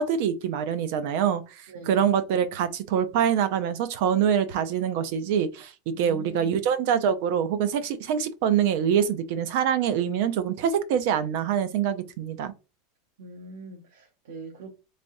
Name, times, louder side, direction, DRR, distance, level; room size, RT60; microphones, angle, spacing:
voice 1, 0.0-12.5, right 8 dB, 55° right, 0.5 m, -25 dB
voice 2, 1.7-2.2 5.9-6.6 13.2-14.7, right 3 dB, 80° right, 0.9 m, -42 dB
3.5 x 3.3 x 2.6 m
supercardioid pair, 160°, 0 cm